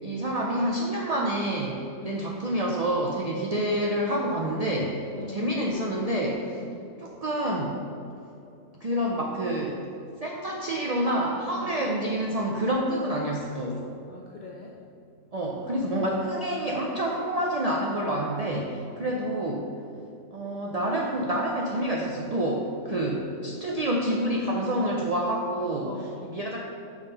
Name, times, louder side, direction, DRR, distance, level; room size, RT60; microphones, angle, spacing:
voice 1, 0.0-5.0 5.3-6.6 7.0-7.8 8.8-9.8 10.2-13.8 15.3-19.7 20.3-25.9 26.3-26.6, right 1 dB, 60° right, -2 dB, 0.4 m, -28 dB
voice 2, 2.0-2.4 5.1-5.5 6.6-6.9 11.5-11.9 14.1-14.8 18.8-19.1 25.9-26.4, left 3 dB, 65° left, -1 dB, 0.4 m, -43 dB
6.3 x 3.6 x 5.3 m, 2.6 s
omnidirectional pair, 1.3 m